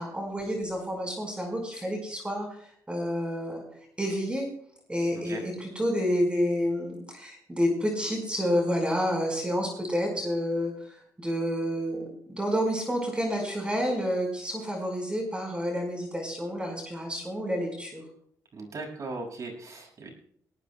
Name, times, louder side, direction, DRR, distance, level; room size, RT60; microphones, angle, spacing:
voice 1, 0.0-3.6 4.0-4.5 4.9-18.0, equal, 15° right, 1 dB, 5.0 m, -29 dB
voice 2, 18.5-20.1, right 3 dB, 55° right, 1 dB, 6.4 m, -38 dB
20.0 x 18.5 x 2.3 m, 0.64 s
cardioid pair, 85°, 7 cm